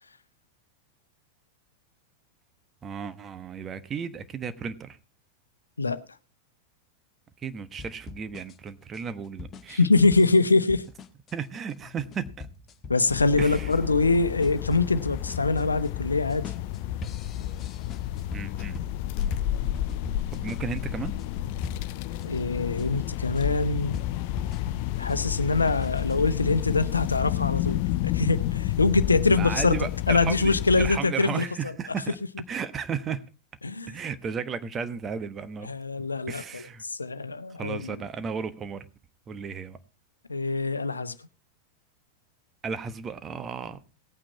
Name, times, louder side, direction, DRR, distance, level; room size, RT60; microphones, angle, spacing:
voice 1, 2.8-5.0 7.4-9.8 11.3-12.5 13.4-13.7 18.3-18.8 20.3-21.1 29.3-32.2 32.5-33.2 33.9-35.7 36.3-36.8 37.6-38.9 39.3-39.8 42.6-43.8, right 6 dB, 25° right, 1.2 m, -34 dB
sound 1, 7.8-22.3 22.8-26.2, left 4 dB, 25° left, 1.3 m, -42 dB
voice 2, 9.7-10.8 12.9-16.5 22.2-24.0 25.0-29.8 30.1-31.4 33.6-33.9 35.6-38.0 40.3-41.1, left 3 dB, 80° left, 0.8 m, -24 dB
sound 2, 13.1-31.0, left 13 dB, 45° left, 0.6 m, -31 dB
18.0 x 9.0 x 4.1 m
figure-of-eight pair, 90°, 0 cm